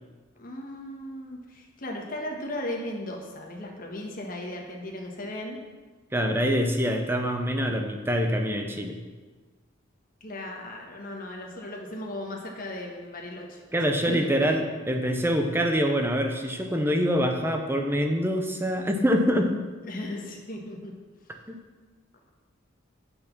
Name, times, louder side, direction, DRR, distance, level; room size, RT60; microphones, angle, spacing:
voice 1, 0.4-5.6 10.2-13.6 14.1-14.6 19.9-20.9, left 1 dB, 45° left, 0 dB, 1.5 m, -36 dB
voice 2, 6.1-9.0 13.7-19.6 21.5-21.6, equal, 10° right, 4 dB, 0.7 m, -25 dB
8.2 x 6.1 x 6.0 m, 1.3 s
head